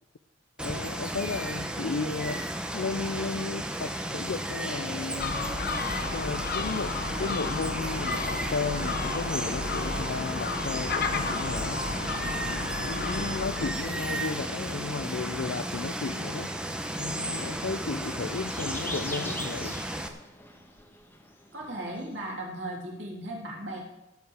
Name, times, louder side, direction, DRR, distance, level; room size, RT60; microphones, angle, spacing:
voice 1, 0.6-5.4 6.1-6.9 7.2-11.8 12.2-16.5 17.0-19.8, left 4 dB, 70° left, 11 dB, 0.5 m, -34 dB
Water, 0.6-20.1, right 1 dB, 5° right, 1.0 m, -34 dB
Gull seagull, 5.2-13.7, left 3 dB, 55° left, 0.9 m, -33 dB
sound 1, 16.2-22.3, left 1 dB, 10° left, 1.5 m, -43 dB
voice 2, 21.5-23.8, right 1 dB, 75° right, -2 dB, 3.3 m, -36 dB
16.5 x 5.6 x 7.5 m, 0.94 s
head